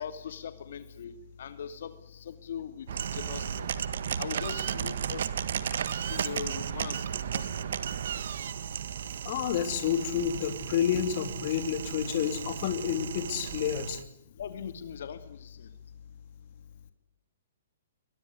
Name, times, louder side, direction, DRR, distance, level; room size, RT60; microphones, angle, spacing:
voice 1, 0.0-3.7 4.1-5.2 5.9-7.7 14.4-15.7, left 7 dB, 65° left, 11 dB, 2.6 m, -40 dB
sound 1, 2.9-14.0, right 8 dB, 65° right, 1.7 m, -34 dB
voice 2, 9.2-14.0, left 9 dB, 40° left, 9 dB, 2.8 m, -29 dB
22.5 x 22.0 x 9.7 m, 0.78 s
hypercardioid pair, 160°, 0 cm